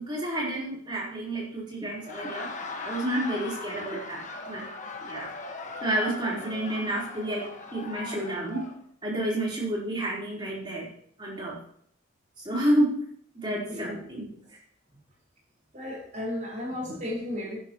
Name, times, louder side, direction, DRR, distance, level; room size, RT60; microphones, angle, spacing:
voice 1, 0.0-2.5 2.8-4.7 5.0-5.3 5.8-8.7 9.0-10.9 11.2-11.6 12.4-13.1 13.3-14.3, right 1 dB, 25° right, -4 dB, 4.0 m, -30 dB
Laughter, 1.9-8.8, left 3 dB, 35° left, 1.5 m, -39 dB
voice 2, 13.5-14.0 15.7-17.6, left 1 dB, 40° right, -2 dB, 4.5 m, -34 dB
13.0 x 10.5 x 3.0 m, 0.64 s
head